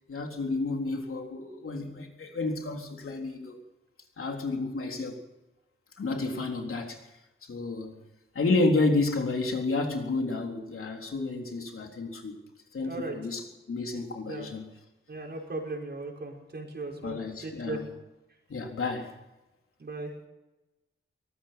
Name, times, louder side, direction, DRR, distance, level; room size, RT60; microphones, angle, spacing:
voice 1, 0.1-3.6 4.2-5.2 6.0-7.0 7.5-8.0 8.3-12.4 12.7-14.6 17.0-17.8 18.5-19.2, left 3 dB, 85° left, 3.8 m, -30 dB
voice 2, 12.8-13.1 13.9-14.5 15.1-17.8 19.8-20.1, right 2 dB, 50° right, 5.9 m, -37 dB
23.0 x 19.5 x 5.9 m
wide cardioid pair, 135°, 21 cm